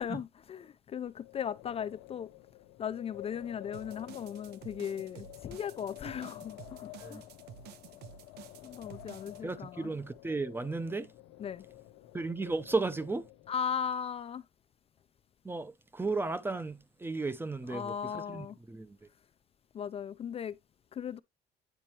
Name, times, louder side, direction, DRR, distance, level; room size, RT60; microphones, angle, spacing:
voice 1, 0.0-2.3 2.8-7.2 8.6-9.9 11.4-11.6 13.5-14.4 17.7-18.6 19.7-20.6 20.9-21.2, left 8 dB, 35° left, 0.4 m, -37 dB
Wind, 1.1-13.7, left 16 dB, 85° left, 0.7 m, -51 dB
sound 1, 3.7-9.4, right 10 dB, 75° right, 0.7 m, -51 dB
voice 2, 9.4-11.1 12.1-13.3 15.4-19.0, right 3 dB, 15° right, 0.6 m, -34 dB
9.0 x 4.3 x 2.9 m
cardioid pair, 110°, 17 cm